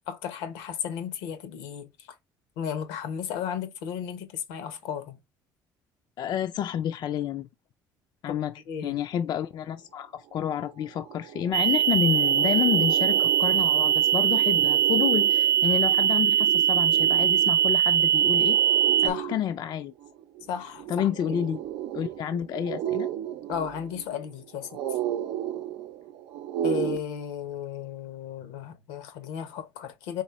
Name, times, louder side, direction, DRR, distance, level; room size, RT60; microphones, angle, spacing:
voice 1, 0.1-1.9 2.6-5.2 8.3-8.4 8.7-9.0 19.0-19.3 20.5-21.4 23.5-24.8 26.6-30.2, left 8 dB, 90° left, 1.0 m, -34 dB
voice 2, 6.2-7.5 8.2-8.5 8.8-18.6 19.0-19.9 20.9-21.6 21.9-23.1, left 10 dB, 55° left, 0.4 m, -29 dB
sound 1, 10.4-10.5 10.8-27.0, right 11 dB, 85° right, 0.6 m, -34 dB
sound 2, 11.5-19.1, right 10 dB, 40° right, 0.4 m, -22 dB
4.2 x 3.5 x 3.0 m
supercardioid pair, 85°, 9 cm